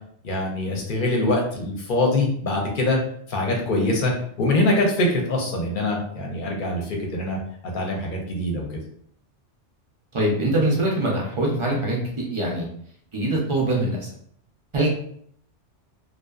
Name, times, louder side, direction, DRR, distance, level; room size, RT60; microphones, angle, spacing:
voice 1, 0.2-3.0 3.3-7.4 7.7-8.6, left 2 dB, 55° left, 0 dB, 0.6 m, -23 dB
voice 2, 10.1-12.7 13.1-14.1 14.7-14.9, right 1 dB, 55° right, -3 dB, 0.3 m, -23 dB
2.7 x 2.1 x 2.3 m, 0.65 s
omnidirectional pair, 1.2 m